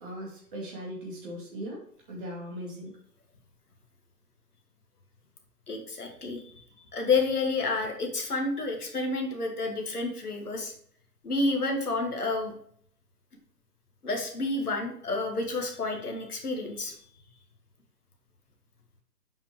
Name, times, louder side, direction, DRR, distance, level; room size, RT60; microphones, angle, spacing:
voice 1, 0.0-2.9 7.8-7.9, equal, 30° right, -3 dB, 2.3 m, -39 dB
voice 2, 5.7-6.6 6.9-10.7 11.2-12.5 14.0-16.9, left 3 dB, 65° left, 2 dB, 2.1 m, -30 dB
7.5 x 5.6 x 3.2 m, 0.63 s
figure-of-eight pair, 135°, 50 cm